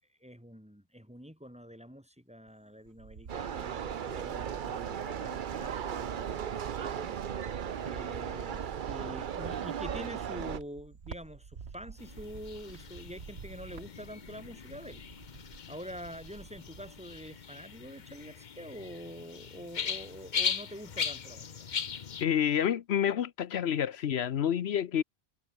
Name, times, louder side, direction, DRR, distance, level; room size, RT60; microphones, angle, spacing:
voice 1, 0.2-7.5 7.8-15.0 15.3-21.7, equal, 5° right, 3.0 m, -46 dB
Cricket, 2.5-4.0 4.5-17.4 17.7-18.3, right 6 dB, 80° right, 1.7 m, -49 dB
sound 1, 3.3-10.6, right 8 dB, 55° right, 0.8 m, -36 dB
sound 2, 12.0-22.2, left 7 dB, 50° left, 0.9 m, -39 dB
voice 2, 22.2-25.0, left 9 dB, 80° left, 1.0 m, -28 dB
omnidirectional pair, 1.1 m